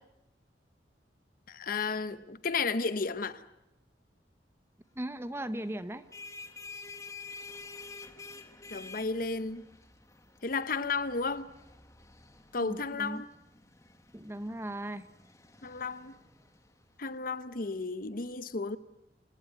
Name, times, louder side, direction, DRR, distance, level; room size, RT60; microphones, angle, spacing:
voice 1, 1.5-3.4 8.7-9.6 10.4-11.5 12.5-13.3 15.6-16.2 17.0-18.8, left 4 dB, 50° left, 0.9 m, -33 dB
voice 2, 5.0-6.0 12.6-13.2 14.1-15.1, right 1 dB, 15° right, 1.0 m, -37 dB
sound 1, 5.9-17.2, left 4 dB, 20° left, 1.7 m, -50 dB
28.5 x 17.0 x 9.3 m
head